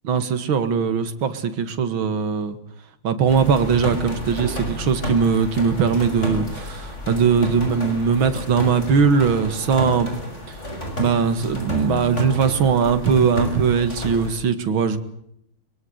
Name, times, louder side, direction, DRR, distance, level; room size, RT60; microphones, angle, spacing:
voice 1, 0.0-2.6 3.0-10.1 10.5-10.6 11.0-15.0, right 6 dB, 70° right, 2.7 m, -20 dB
sound 1, 3.3-14.3, equal, 30° left, 7.1 m, -30 dB
23.0 x 23.0 x 8.1 m
omnidirectional pair, 2.3 m